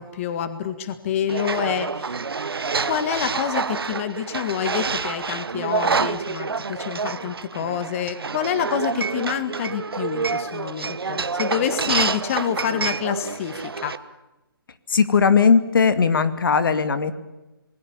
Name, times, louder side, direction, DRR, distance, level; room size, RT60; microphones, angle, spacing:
voice 1, 0.0-2.2 2.8-14.0, left 8 dB, 35° left, 11 dB, 1.8 m, -27 dB
sound 1, 1.3-14.0, right 5 dB, 75° right, 1.2 m, -27 dB
voice 2, 14.9-17.1, left 5 dB, 60° left, 12 dB, 2.3 m, -18 dB
27.5 x 21.0 x 7.1 m, 1.0 s
figure-of-eight pair, 145°, 13 cm